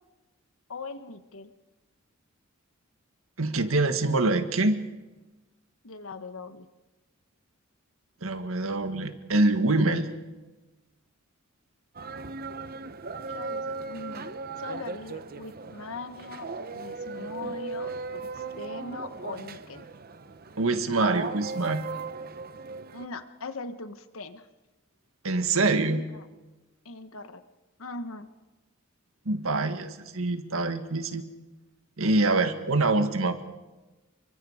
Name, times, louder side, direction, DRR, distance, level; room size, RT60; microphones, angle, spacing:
voice 1, 0.7-1.5 5.8-6.7 13.3-14.3 14.6-19.9 22.9-24.5 25.8-26.2 26.8-27.4 27.8-28.3, left 3 dB, 85° left, 10 dB, 1.2 m, -40 dB
voice 2, 3.4-4.8 8.2-10.1 20.6-21.9 25.2-26.0 29.2-31.2 32.0-33.4, right 2 dB, 90° right, 8 dB, 1.8 m, -25 dB
sound 1, 11.9-23.1, right 4 dB, 45° right, 0.9 m, -37 dB
29.5 x 24.0 x 5.0 m, 1.1 s
head